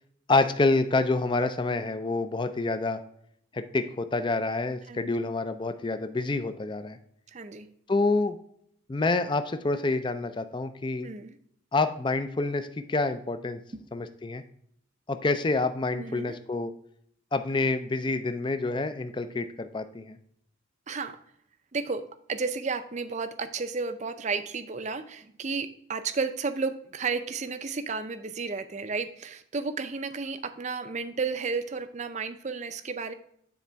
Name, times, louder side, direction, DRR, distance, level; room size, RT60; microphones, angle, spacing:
voice 1, 0.3-3.0 3.5-7.0 7.9-8.4 8.9-11.1 11.7-13.6 13.9-14.4 15.1-16.7 17.3-20.2, left 3 dB, 25° left, 10 dB, 0.4 m, -27 dB
voice 2, 7.3-7.7 11.0-11.4 15.9-16.4 20.9-21.2 21.7-22.0 22.3-33.1, right 4 dB, 35° right, 10 dB, 0.5 m, -32 dB
9.3 x 4.1 x 3.4 m, 0.69 s
head